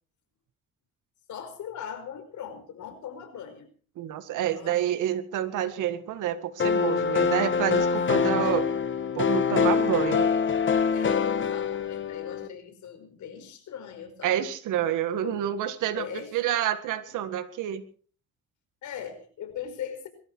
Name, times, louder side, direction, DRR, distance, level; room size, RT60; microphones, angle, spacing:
voice 1, 1.3-3.7 4.3-4.8 8.0-8.1 10.9-14.4 15.2-15.5 15.9-16.3 17.1-17.2 18.8-20.1, left 8 dB, 75° left, 7 dB, 5.1 m, -39 dB
voice 2, 4.0-8.7 9.2-10.3 14.2-16.1 16.3-17.8, right 11 dB, 90° right, 10 dB, 1.9 m, -28 dB
sound 1, 6.6-12.5, left 6 dB, 40° left, 1.4 m, -25 dB
22.5 x 13.5 x 4.7 m, 0.43 s
cardioid pair, 90°, 30 cm